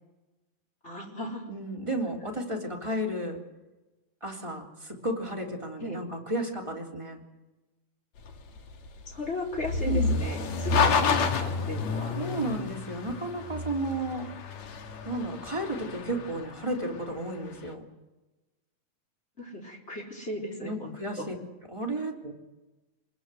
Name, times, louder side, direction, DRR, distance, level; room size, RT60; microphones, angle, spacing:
voice 1, 0.8-1.4 5.8-6.0 9.1-12.2 19.4-21.3, left 1 dB, 20° left, 0 dB, 4.1 m, -36 dB
voice 2, 1.5-3.4 4.2-7.2 9.9-10.1 12.1-14.3 15.0-17.8 20.6-21.3 21.7-22.3, right 1 dB, 10° right, -1 dB, 3.2 m, -33 dB
sound 1, 8.2-17.5, left 5 dB, 65° left, 3.0 m, -30 dB
25.0 x 21.5 x 7.8 m, 1.1 s
omnidirectional pair, 3.6 m